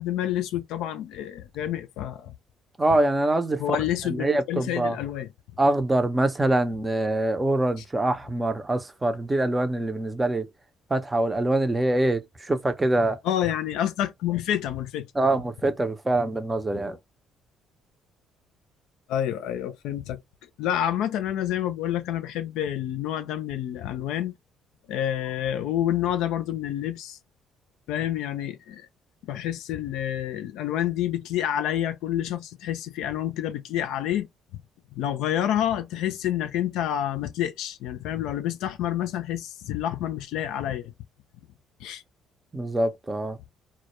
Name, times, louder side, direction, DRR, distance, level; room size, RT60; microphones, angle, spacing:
voice 1, 0.0-2.3 3.6-5.3 13.2-15.1 19.1-20.2 20.6-24.3 24.9-27.2 27.9-28.9 29.2-34.3 34.9-40.9 41.8-42.0, left 11 dB, 70° left, 0.3 m, -28 dB
voice 2, 2.8-3.6 4.0-5.0 5.6-10.5 10.9-13.2 15.1-17.0 42.5-43.4, right 2 dB, 20° right, 0.5 m, -24 dB
2.1 x 2.1 x 2.9 m
hypercardioid pair, 55°, 0 cm